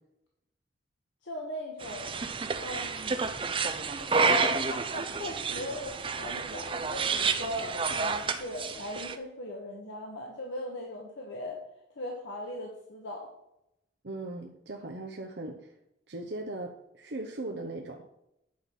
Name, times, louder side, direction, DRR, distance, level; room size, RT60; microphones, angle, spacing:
voice 1, 1.2-2.2 2.6-3.3 4.0-11.6 11.9-13.3, left 1 dB, 85° left, 0 dB, 1.4 m, -38 dB
sound 1, 1.8-9.1, right 5 dB, 30° right, 0.5 m, -30 dB
voice 2, 14.0-15.7 16.1-18.1, right 2 dB, 65° right, 1 dB, 0.9 m, -39 dB
9.5 x 5.4 x 6.0 m, 0.83 s
head